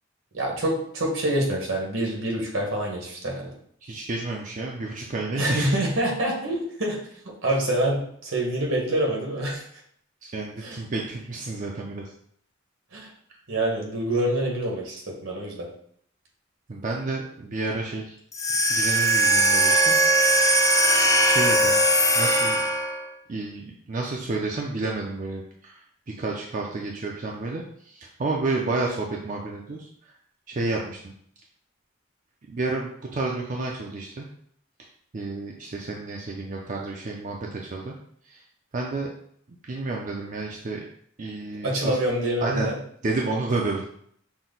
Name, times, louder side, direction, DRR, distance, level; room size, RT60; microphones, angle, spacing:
voice 1, 0.3-3.5 5.4-7.0 7.4-9.6 10.6-10.8 12.9-13.1 13.5-15.7 41.6-42.8, right 1 dB, 75° right, -1 dB, 1.4 m, -26 dB
voice 2, 3.8-5.8 10.2-12.1 16.7-18.2 18.7-20.0 21.2-21.8 22.2-22.6 23.3-25.8 26.2-29.9 30.5-31.1 32.5-34.3 35.1-37.9 38.3-38.4 38.7-39.1 39.6-40.8 41.2-42.0 42.4-42.7 43.0-43.8, right 3 dB, 40° right, -1 dB, 0.5 m, -30 dB
sound 1, 18.3-23.1, right 1 dB, 15° left, 0.4 m, -20 dB
6.0 x 2.2 x 3.9 m, 0.65 s
head